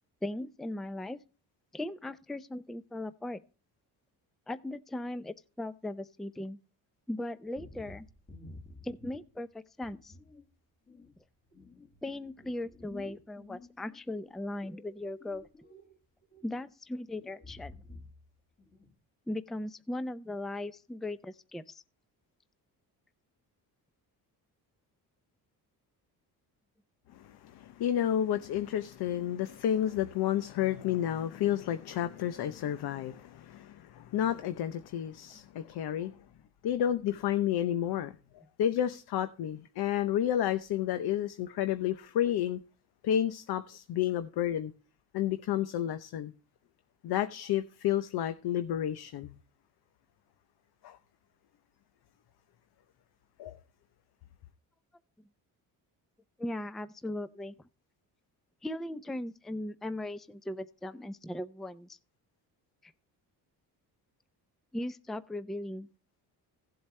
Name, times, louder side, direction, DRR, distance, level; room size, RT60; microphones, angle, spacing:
voice 1, 0.2-1.2 1.7-3.4 4.5-6.6 7.1-8.1 8.8-10.2 12.0-15.4 16.4-17.8 19.3-21.8 56.4-57.5 58.6-62.0 62.8-62.9 64.7-65.9, left 1 dB, ahead, 0.5 m, -38 dB
sound 1, 7.5-9.4 9.8-10.5 10.9-14.0 14.4-16.0 16.2-16.6 17.1-18.3 18.6-19.0, left 2 dB, 25° left, 1.9 m, -51 dB
voice 2, 27.1-36.1 36.6-42.6 43.0-44.7 45.1-46.3 47.0-49.3 50.8-51.0 53.4-53.6, left 11 dB, 70° left, 0.8 m, -31 dB
16.0 x 7.8 x 3.2 m
cardioid pair, 100°, 40 cm